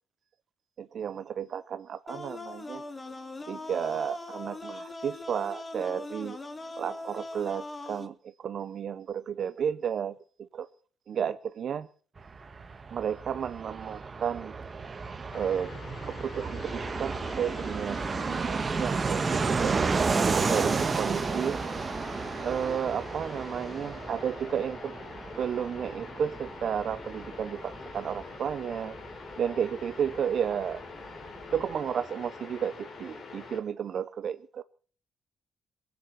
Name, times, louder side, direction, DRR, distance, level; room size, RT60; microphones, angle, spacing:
voice 1, 0.8-2.8 3.5-6.4 6.8-8.1 8.4-10.1 10.5-10.7 11.1-11.9 12.9-14.5 15.3-15.7 16.0-18.0 18.3-19.8 20.2-21.6 22.4-24.9 25.4-28.9 29.4-30.8 31.5-34.6, right 8 dB, 60° right, 0.8 m, -32 dB
sound 1, 2.1-8.1, left 2 dB, 25° left, 1.9 m, -41 dB
Fixed-wing aircraft airplane, 12.2-30.6 30.8-30.9 31.1-31.8, right 4 dB, 35° right, 1.6 m, -32 dB
sound 2, 15.3-33.6, left 4 dB, 50° left, 3.7 m, -44 dB
19.0 x 9.6 x 7.4 m
cardioid pair, 90°, 0 cm